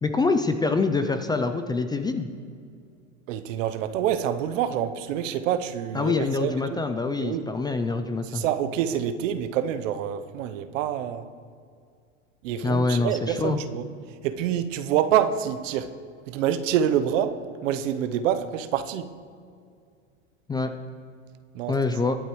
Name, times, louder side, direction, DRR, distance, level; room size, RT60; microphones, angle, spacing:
voice 1, 0.0-2.3 5.9-8.4 12.6-13.6 20.5-20.7 21.7-22.2, left 3 dB, 10° left, 0.4 m, -25 dB
voice 2, 3.3-6.8 7.2-7.5 8.2-11.3 12.4-13.9 14.2-15.9 16.3-19.1 21.5-21.8, right 10 dB, 70° right, 0.9 m, -27 dB
22.0 x 8.0 x 3.1 m
supercardioid pair, 110°, 39 cm